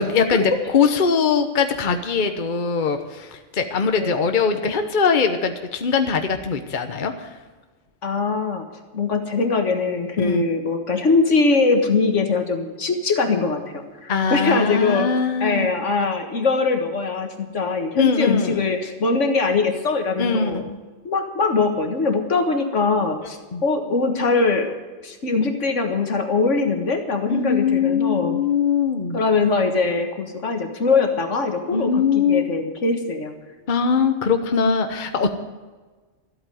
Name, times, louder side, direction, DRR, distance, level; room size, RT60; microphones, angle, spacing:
voice 1, 0.0-7.3 10.2-10.4 14.1-15.7 18.0-18.6 20.2-20.8 23.5-23.6 27.3-29.2 31.7-32.5 33.7-35.3, left 5 dB, 45° left, 7 dB, 1.1 m, -21 dB
voice 2, 8.0-8.6 8.9-15.1 15.4-20.7 21.0-24.7 25.0-28.4 29.1-33.3, left 4 dB, 80° left, 5 dB, 1.9 m, -22 dB
13.5 x 8.5 x 9.1 m, 1.3 s
omnidirectional pair, 1.3 m